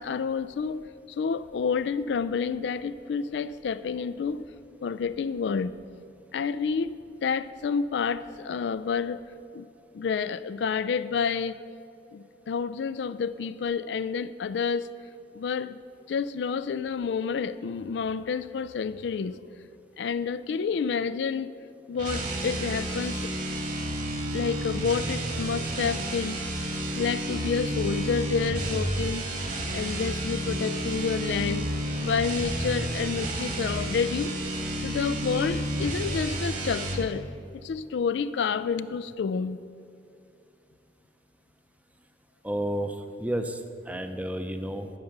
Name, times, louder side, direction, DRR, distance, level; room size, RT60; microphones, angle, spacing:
voice 1, 0.0-4.5 4.8-5.8 6.3-9.2 9.5-9.7 9.9-11.6 12.1-14.9 15.3-15.8 16.1-19.4 20.0-21.5 21.9-23.2 24.3-26.4 26.9-29.3 29.7-31.7 32.0-34.4 34.8-37.3 37.6-39.6, left 6 dB, 70° left, 15 dB, 0.3 m, -29 dB
sound 1, 21.9-37.1, right 1 dB, 45° right, 1.6 m, -31 dB
voice 2, 42.4-44.9, right 1 dB, 10° right, 7 dB, 0.6 m, -31 dB
14.5 x 5.8 x 6.6 m, 2.6 s
head